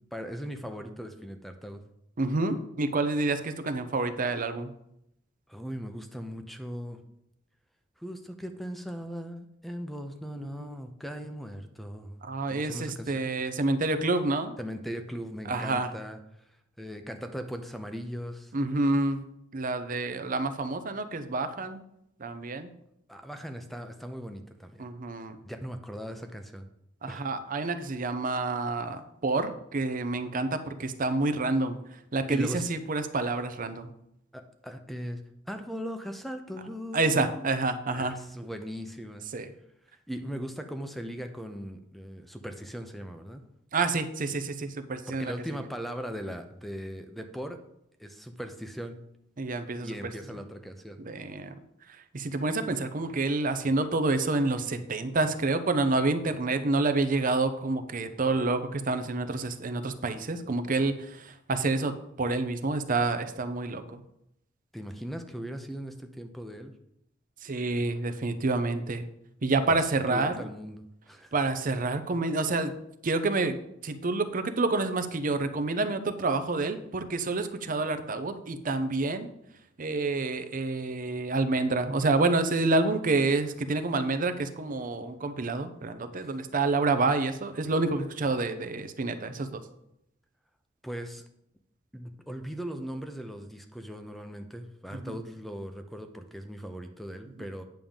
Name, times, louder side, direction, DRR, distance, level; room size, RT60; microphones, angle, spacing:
voice 1, 0.0-1.8 5.5-7.0 8.0-12.2 12.5-13.3 14.6-16.4 16.8-18.5 23.1-24.9 25.4-26.7 27.1-27.2 32.3-32.7 34.3-35.2 35.5-37.5 37.9-39.3 40.1-43.4 45.1-47.6 48.0-49.0 49.8-51.0 64.7-66.7 70.1-71.3 90.8-91.3 91.9-97.6, equal, ahead, 6 dB, 0.6 m, -39 dB
voice 2, 2.2-4.7 10.6-10.7 12.2-14.5 15.5-15.9 18.5-19.2 19.5-21.8 22.2-22.7 24.8-25.4 27.0-31.8 32.1-33.9 36.9-38.2 39.3-39.5 43.7-45.3 49.4-50.1 51.0-51.5 52.1-64.0 67.4-69.1 69.4-70.4 71.3-72.7 73.0-73.6 73.8-79.3 79.8-89.6 94.9-95.2, right 3 dB, 45° right, 10 dB, 0.6 m, -28 dB
9.0 x 3.7 x 7.0 m, 0.78 s
head